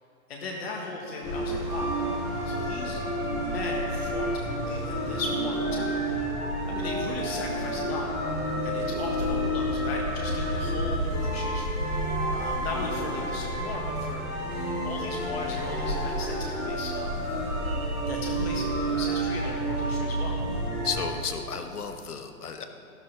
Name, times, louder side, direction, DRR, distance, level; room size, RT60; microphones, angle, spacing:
voice 1, 0.3-1.9 2.5-3.0 3.4-6.0 6.7-8.1 8.6-14.2 14.5-17.2 18.1-20.4, left 3 dB, 45° left, -1 dB, 1.7 m, -37 dB
sound 1, 1.2-21.1, right 1 dB, 5° left, 0.4 m, -29 dB
voice 2, 20.8-22.7, left 6 dB, 85° left, 6 dB, 1.4 m, -33 dB
12.5 x 12.0 x 4.0 m, 2.6 s
hypercardioid pair, 150°, 44 cm